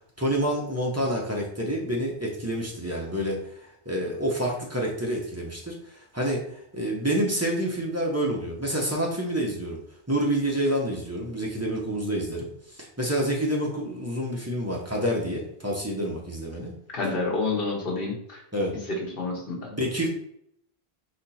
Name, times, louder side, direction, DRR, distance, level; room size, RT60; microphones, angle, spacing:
voice 1, 0.2-9.8 10.1-16.7 18.5-18.7 19.6-20.1, right 1 dB, 15° right, -2 dB, 0.8 m, -28 dB
voice 2, 16.9-18.4 19.2-19.7, left 3 dB, 60° left, -1 dB, 1.4 m, -28 dB
4.2 x 2.9 x 4.1 m, 0.72 s
omnidirectional pair, 1.1 m